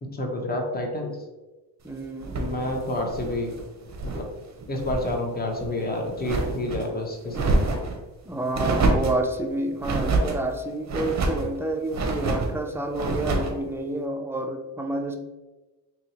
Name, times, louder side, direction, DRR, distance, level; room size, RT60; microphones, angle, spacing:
voice 1, 0.0-1.2 2.3-3.5 4.0-4.2 4.7-7.8, left 1 dB, 20° left, 2 dB, 0.8 m, -29 dB
voice 2, 1.8-2.4 8.3-15.2, right 1 dB, 5° right, 3 dB, 0.3 m, -29 dB
sound 1, 2.2-4.3 4.6-5.2 5.5-6.9 7.3-8.0 8.5-9.2 9.8-10.4 10.9-11.5 11.9-12.5 12.9-13.6, right 2 dB, 40° right, 0.7 m, -26 dB
2.9 x 2.8 x 4.1 m, 1.1 s
cardioid pair, 90°, 45 cm